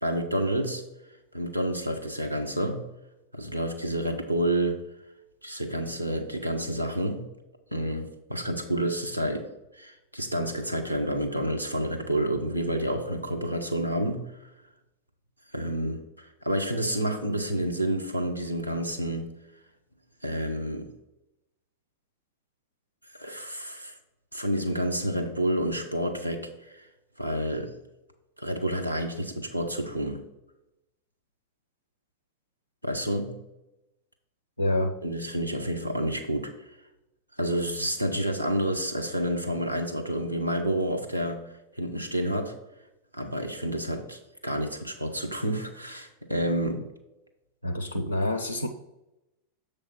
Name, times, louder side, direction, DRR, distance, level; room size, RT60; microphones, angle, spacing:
voice 1, 0.0-0.8 1.3-2.9 3.3-4.8 5.4-7.3 7.7-9.5 9.7-14.5 15.5-19.3 20.2-20.9 23.1-23.9 24.3-26.9 27.2-27.7 28.4-30.2 32.8-33.4 35.0-36.5 37.4-41.4 41.8-42.5 43.1-46.9, right 1 dB, 90° right, 3 dB, 0.8 m, -29 dB
voice 2, 34.6-34.9 47.6-48.7, left 1 dB, 85° left, 4 dB, 0.4 m, -27 dB
6.9 x 3.4 x 5.8 m, 0.93 s
figure-of-eight pair, 90°, 0 cm